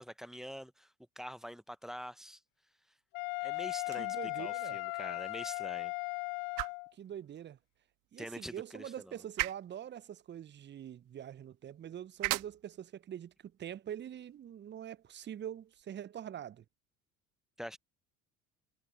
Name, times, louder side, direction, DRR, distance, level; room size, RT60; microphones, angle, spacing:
voice 1, 0.0-2.4 3.4-5.9 8.2-9.2 17.6-17.8, equal, ahead, 1.3 m, -45 dB
Wind instrument woodwind instrument, 3.1-6.9, left 36 dB, 45° left, 0.4 m, -37 dB
sound 1, 3.8-15.8, right 22 dB, 50° right, 1.8 m, -44 dB
voice 2, 4.0-4.8 6.9-7.6 8.1-16.6, right 10 dB, 25° right, 0.9 m, -44 dB
figure-of-eight pair, 65°, 41 cm